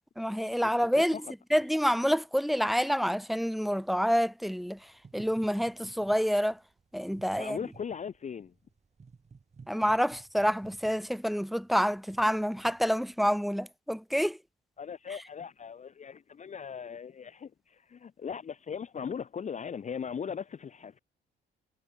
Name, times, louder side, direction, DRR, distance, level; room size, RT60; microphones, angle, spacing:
voice 1, 0.2-1.2 1.5-6.6 6.9-7.6 9.7-14.4, equal, ahead, 1.4 m, -28 dB
sound 1, 4.6-13.1, right 5 dB, 35° right, 6.9 m, -56 dB
voice 2, 7.4-8.5 14.8-21.0, left 7 dB, 35° left, 0.8 m, -39 dB
cardioid pair, 90°, 20 cm